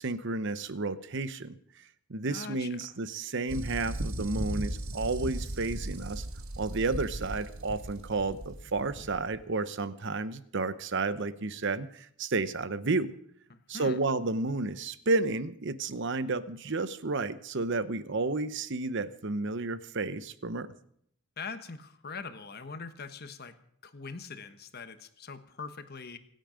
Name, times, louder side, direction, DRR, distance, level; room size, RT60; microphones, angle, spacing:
voice 1, 0.0-1.6 2.1-6.2 6.6-13.1 13.7-20.7, right 3 dB, 55° right, 14 dB, 0.9 m, -31 dB
voice 2, 2.2-3.0 13.5-14.0 21.4-23.5 23.8-26.2, left 4 dB, 45° left, 9 dB, 1.3 m, -42 dB
sound 1, 3.5-9.4, right 1 dB, 80° right, 1.5 m, -37 dB
25.5 x 9.2 x 5.1 m, 0.69 s
head